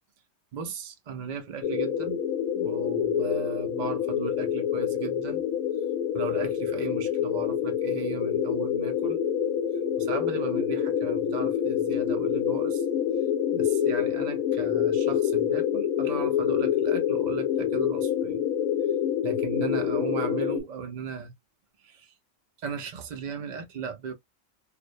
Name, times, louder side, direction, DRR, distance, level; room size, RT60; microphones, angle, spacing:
voice 1, 0.5-2.2 2.5-5.4 6.1-9.2 10.0-12.9 13.5-18.4 19.2-21.3 21.8-22.1 22.6-24.1, right 6 dB, 70° right, 0.4 m, -36 dB
sound 1, 1.6-20.6, left 9 dB, 80° left, 1.1 m, -27 dB
2.4 x 2.0 x 2.4 m
omnidirectional pair, 1.5 m